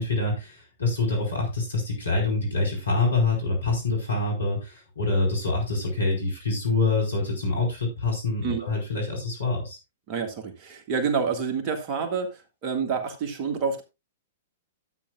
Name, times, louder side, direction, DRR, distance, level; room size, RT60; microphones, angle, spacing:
voice 1, 0.0-9.8, left 3 dB, 75° left, 1 dB, 4.8 m, -26 dB
voice 2, 10.1-13.8, right 5 dB, 35° right, 5 dB, 1.9 m, -28 dB
12.5 x 8.9 x 2.4 m, 0.25 s
figure-of-eight pair, 105°, 0 cm